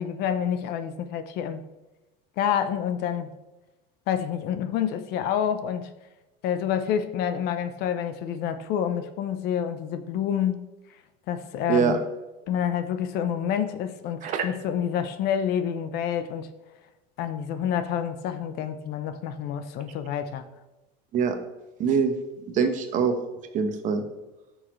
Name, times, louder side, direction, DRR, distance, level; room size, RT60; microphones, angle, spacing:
voice 1, 0.0-1.6 2.4-3.3 4.1-5.9 6.4-10.7 11.3-12.0 12.5-16.5 17.2-20.4, left 9 dB, 50° left, 0.7 m, -28 dB
voice 2, 21.8-22.1 22.5-23.2 23.5-24.0, right 6 dB, 40° right, 1.2 m, -23 dB
13.5 x 6.4 x 3.2 m
cardioid pair, 160°, 21 cm